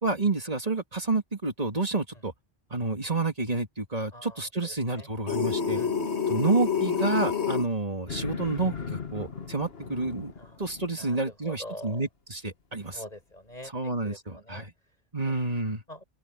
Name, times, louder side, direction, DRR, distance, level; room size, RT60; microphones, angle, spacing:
voice 1, 0.0-2.3 2.7-5.8 6.3-10.3 10.6-13.0 13.7-14.7 15.1-15.8, right 3 dB, 35° right, 2.8 m, -29 dB
voice 2, 4.1-5.1 5.7-5.9 10.3-10.6 11.0-12.0 12.9-15.0 15.2-15.3 15.9-16.0, left 1 dB, 40° left, 8.0 m, -45 dB
sound 1, 5.3-7.7, left 6 dB, 85° left, 2.3 m, -27 dB
sound 2, 8.1-11.1, left 6 dB, 70° left, 1.9 m, -38 dB
open air
omnidirectional pair, 1.1 m